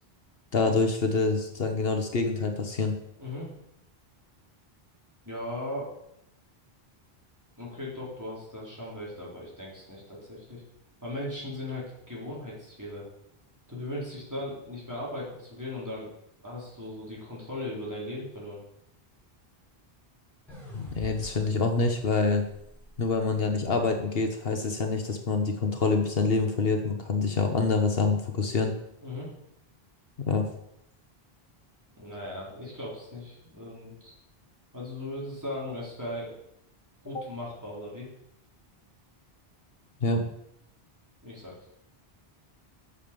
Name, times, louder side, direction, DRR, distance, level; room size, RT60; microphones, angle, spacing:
voice 1, 0.5-2.9 20.7-22.4 23.0-28.7 30.3-30.4 37.1-37.2 40.0-40.2, left 4 dB, 70° left, 5 dB, 1.3 m, -26 dB
voice 2, 3.2-3.5 5.2-5.9 7.6-10.6 11.0-13.0 13.7-16.1 16.4-18.6 29.0-29.3 32.0-34.1 34.7-36.3 37.0-38.1 41.2-41.7, left 1 dB, 15° right, -6 dB, 4.2 m, -38 dB
sound 1, 20.5-23.7, left 1 dB, ahead, 5.1 m, -47 dB
9.1 x 7.1 x 6.9 m, 0.78 s
omnidirectional pair, 1.0 m